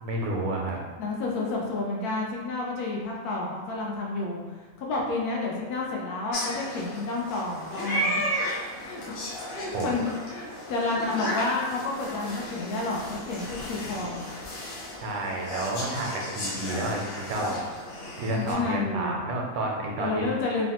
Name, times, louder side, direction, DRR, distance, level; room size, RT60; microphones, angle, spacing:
voice 1, 0.0-0.8 9.7-9.9 15.0-17.6 18.2-20.3, right 2 dB, 80° right, 0 dB, 1.0 m, -30 dB
voice 2, 1.0-8.2 8.8-9.0 9.5-14.2 18.3-19.2 20.0-20.7, left 3 dB, 80° left, -2 dB, 1.1 m, -30 dB
sound 1, 6.3-18.5, equal, 55° left, 0.8 m, -34 dB
3.1 x 2.1 x 2.8 m, 1.4 s
omnidirectional pair, 1.6 m